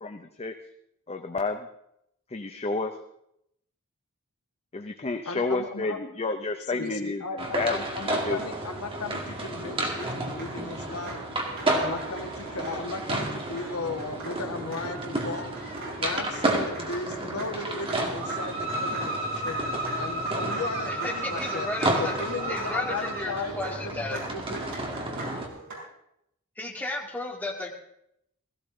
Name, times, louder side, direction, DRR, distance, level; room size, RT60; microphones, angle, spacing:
voice 1, 0.0-0.5 1.1-1.7 2.3-3.0 4.7-8.4, left 3 dB, 30° left, 6 dB, 0.7 m, -30 dB
voice 2, 5.3-6.0 6.7-11.2 11.7-15.5 16.0-21.7 22.0-24.6, left 3 dB, 75° left, 4 dB, 1.6 m, -36 dB
sound 1, 7.4-25.5, right 1 dB, 25° right, 2.1 m, -32 dB
sound 2, 9.9-25.7, right 2 dB, 60° right, 6.3 m, -37 dB
voice 3, 20.8-22.1 22.5-24.2 26.6-27.7, left 2 dB, 10° left, -2 dB, 2.1 m, -34 dB
16.5 x 15.5 x 3.8 m, 0.76 s
head